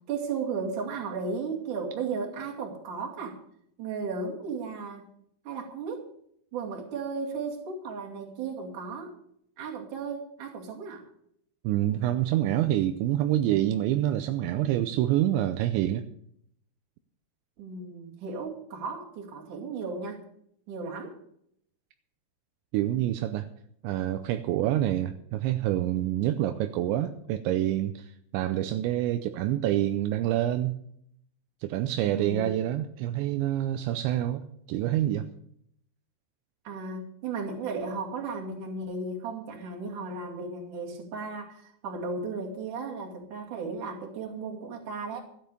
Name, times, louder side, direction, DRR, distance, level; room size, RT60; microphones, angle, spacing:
voice 1, 0.1-3.4 3.8-5.1 5.5-6.1 6.5-9.2 9.6-11.0 17.6-20.2 20.7-21.2 32.0-32.6 36.7-45.2, right 4 dB, 50° right, 0 dB, 3.5 m, -35 dB
voice 2, 11.6-16.0 22.7-23.5 23.8-30.7 31.6-34.4 34.7-35.3, right 13 dB, 85° right, 9 dB, 2.9 m, -27 dB
13.5 x 9.3 x 6.6 m, 0.69 s
omnidirectional pair, 5.3 m